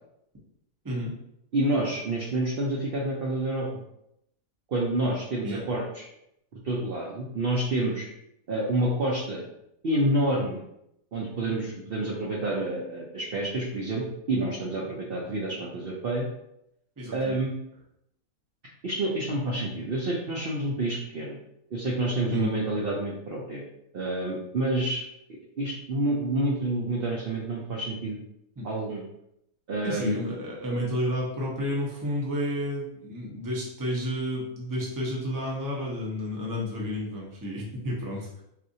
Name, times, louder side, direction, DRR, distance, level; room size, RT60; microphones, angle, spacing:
voice 1, 1.5-3.7 4.7-6.0 6.5-8.1 8.5-9.4 9.8-10.6 11.1-16.2 17.1-17.5 18.8-21.4 21.7-23.6 23.9-25.0 25.6-28.2 28.6-29.0 29.7-30.2, right 1 dB, 60° right, -3 dB, 0.6 m, -28 dB
voice 2, 17.0-17.4 22.3-22.5 28.6-28.7 29.8-38.4, equal, 20° right, -3 dB, 0.6 m, -31 dB
4.3 x 2.4 x 2.6 m, 0.80 s
omnidirectional pair, 1.5 m